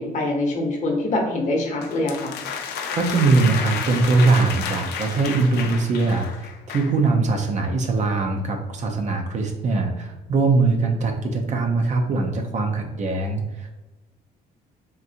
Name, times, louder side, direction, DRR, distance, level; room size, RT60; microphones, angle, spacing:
voice 1, 0.0-2.3, left 2 dB, 45° left, 1 dB, 0.9 m, -24 dB
sound 1, 1.8-7.0, left 6 dB, 75° left, 0.5 m, -31 dB
voice 2, 2.9-13.7, right 3 dB, 45° right, 3 dB, 0.6 m, -21 dB
3.7 x 2.6 x 2.7 m, 1.1 s
cardioid pair, 110°, 17 cm